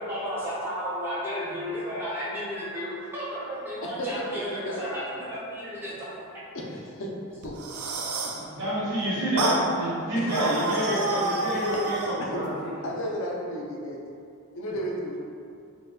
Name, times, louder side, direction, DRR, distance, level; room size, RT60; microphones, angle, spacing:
voice 1, 0.0-6.1, equal, 10° right, -9 dB, 0.7 m, -33 dB
voice 2, 3.8-5.3 6.5-7.2 7.4-7.6 8.2-8.3 10.1-10.3 11.6-11.8 12.2-12.4 12.8-14.0 14.5-15.2, equal, 60° left, -1 dB, 0.5 m, -34 dB
sound 1, 7.4-8.4 9.4-9.6 10.3-12.2, right 2 dB, 75° right, 0.4 m, -29 dB
voice 3, 8.4-12.7, right 1 dB, 55° right, -11 dB, 1.4 m, -28 dB
4.2 x 2.1 x 2.3 m, 2.5 s
head